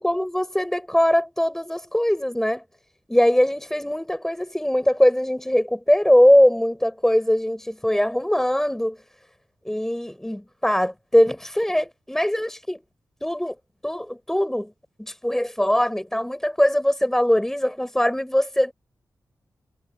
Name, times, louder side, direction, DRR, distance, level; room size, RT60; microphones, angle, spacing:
voice 1, 0.0-2.6 3.1-9.0 9.6-12.8 13.2-13.5 13.8-14.7 15.0-18.7, left 1 dB, 5° left, 6.9 m, -21 dB
wide cardioid pair, 120°, 7 cm